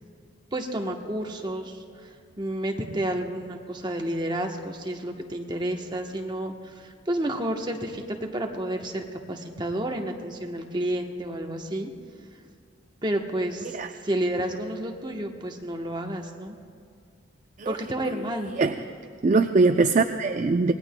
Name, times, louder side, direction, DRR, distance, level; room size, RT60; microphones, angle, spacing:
voice 1, 0.5-2.1 2.4-11.9 13.0-13.8 14.0-16.6 17.6-18.5, right 1 dB, 25° right, 2 dB, 1.0 m, -30 dB
voice 2, 19.2-20.7, right 3 dB, 40° right, 7 dB, 0.4 m, -21 dB
25.5 x 19.0 x 2.2 m, 2.2 s
head